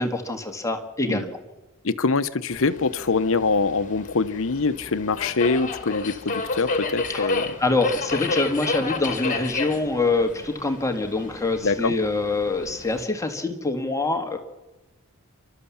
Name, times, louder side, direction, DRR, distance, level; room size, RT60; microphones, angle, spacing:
voice 1, 0.0-1.4 7.1-14.4, left 3 dB, 15° left, 5 dB, 1.8 m, -25 dB
voice 2, 1.8-7.4 11.6-11.9, left 4 dB, 65° left, 14 dB, 0.9 m, -24 dB
Subway metro underground, 2.5-13.0, left 3 dB, 35° left, 2.1 m, -31 dB
29.0 x 12.5 x 7.2 m, 1.1 s
head